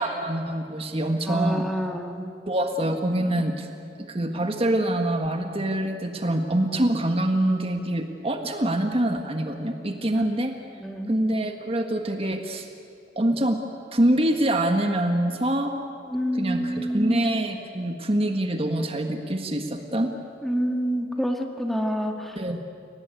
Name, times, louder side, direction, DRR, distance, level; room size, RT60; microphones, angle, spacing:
voice 1, 0.0-1.6 2.5-3.7 4.1-10.5 11.1-12.7 13.1-13.6 13.9-15.7 16.3-20.1 22.4-22.6, right 1 dB, 35° right, 5 dB, 1.6 m, -25 dB
voice 2, 1.3-2.3 10.1-10.2 10.8-11.1 16.1-17.3 20.4-22.4, equal, ahead, 3 dB, 1.9 m, -28 dB
29.5 x 18.5 x 9.2 m, 2.5 s
head